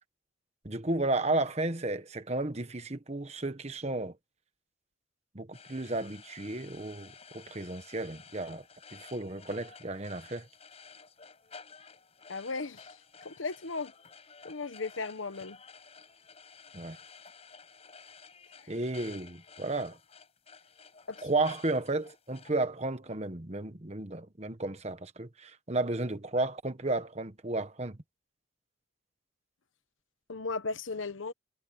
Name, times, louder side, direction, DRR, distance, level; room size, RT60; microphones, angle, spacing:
voice 1, 0.6-4.2 5.3-8.6 8.9-10.5 16.7-17.0 18.7-20.0 21.2-28.0, right 2 dB, 35° right, 1.3 m, -33 dB
sound 1, 5.5-22.5, left 5 dB, 30° left, 6.1 m, -53 dB
voice 2, 12.3-13.9 14.4-15.6 18.6-18.7 21.1-21.3 30.3-31.3, left 3 dB, 80° left, 1.1 m, -36 dB
head